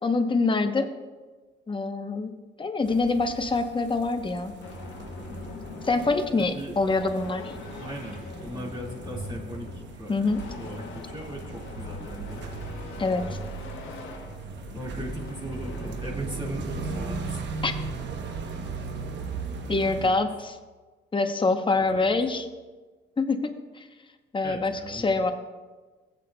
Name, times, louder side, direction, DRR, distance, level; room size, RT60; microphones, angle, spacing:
voice 1, 0.0-0.9 1.7-4.5 5.8-7.6 10.1-10.4 13.0-13.4 17.6-17.7 19.7-20.6 21.1-22.5 23.2-23.9 24.3-25.3, left 3 dB, 25° left, 7 dB, 0.8 m, -25 dB
sound 1, 2.8-20.1, right 4 dB, 65° right, 0.9 m, -38 dB
sound 2, 4.6-17.0, left 2 dB, 80° left, 1.2 m, -41 dB
sound 3, 6.3-10.4 11.2-14.5 15.2-15.3, equal, 80° right, 3.2 m, -46 dB
voice 2, 6.4-6.7 7.8-8.2 8.4-10.3 10.6-12.4 14.7-17.4 20.0-20.2 21.7-22.1 24.4-25.1, equal, 25° right, -4 dB, 1.9 m, -38 dB
17.0 x 8.3 x 2.2 m, 1.3 s
cardioid pair, 90°, 20 cm